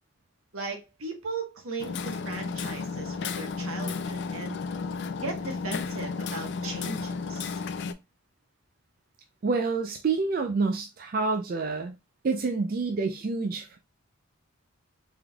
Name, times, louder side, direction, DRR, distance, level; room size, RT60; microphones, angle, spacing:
voice 1, 0.5-4.6 5.2-7.6, right 3 dB, 80° right, 1.1 m, -37 dB
Hammer, 1.8-7.9, left 4 dB, 50° left, 0.3 m, -33 dB
voice 2, 9.4-11.9 12.2-13.8, right 4 dB, 45° right, 0.3 m, -28 dB
3.7 x 3.4 x 2.2 m
head